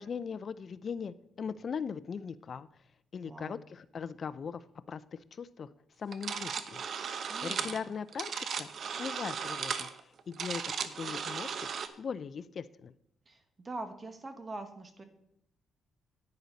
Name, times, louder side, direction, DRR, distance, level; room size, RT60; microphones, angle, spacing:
voice 1, 0.0-2.7 3.1-5.7 6.0-6.8 7.4-8.7 9.0-11.7 12.0-12.9, left 6 dB, 50° left, 16 dB, 0.4 m, -40 dB
voice 2, 3.2-3.6 7.3-7.8 13.3-15.0, right 2 dB, 30° right, 8 dB, 1.5 m, -43 dB
sound 1, 6.1-11.9, right 6 dB, 55° right, 0.8 m, -36 dB
10.5 x 9.5 x 4.0 m, 0.76 s
cardioid pair, 90°, 0 cm